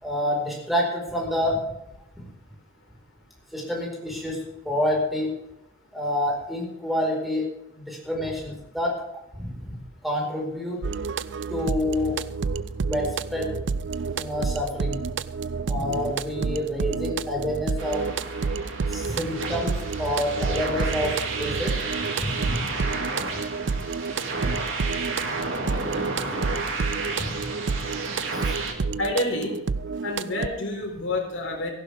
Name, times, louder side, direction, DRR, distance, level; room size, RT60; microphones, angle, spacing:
voice 1, 0.0-1.6 3.5-4.4 4.6-5.3 5.9-7.4 7.8-8.9 9.4-9.5 10.0-10.8 11.5-12.2 12.8-13.5 14.1-15.0 15.7-18.0 18.9-21.7 22.2-22.7 24.4-24.5 27.2-27.3 28.3-28.5, left 1 dB, ahead, -2 dB, 4.6 m, -28 dB
sound 1, 10.8-30.5, right 4 dB, 60° right, 0.5 m, -30 dB
sound 2, 17.8-28.7, right 3 dB, 85° right, 2.4 m, -32 dB
voice 2, 29.0-29.6 30.0-31.7, left 1 dB, 70° left, 1 dB, 4.2 m, -28 dB
17.0 x 15.0 x 3.5 m, 0.86 s
head